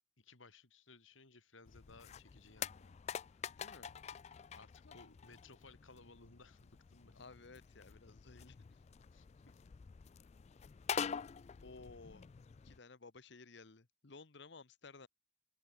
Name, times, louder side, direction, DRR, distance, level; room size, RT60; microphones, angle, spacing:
voice 1, 0.2-3.0 3.3-3.5 4.5-7.2 9.1-9.6, left 3 dB, 80° left, 3.3 m, -61 dB
sound 1, 1.7-12.8, left 7 dB, 35° left, 0.3 m, -47 dB
voice 2, 3.6-3.9 4.8-5.0 7.1-8.8 11.6-12.3 12.6-15.1, left 3 dB, 60° left, 1.1 m, -56 dB
open air
head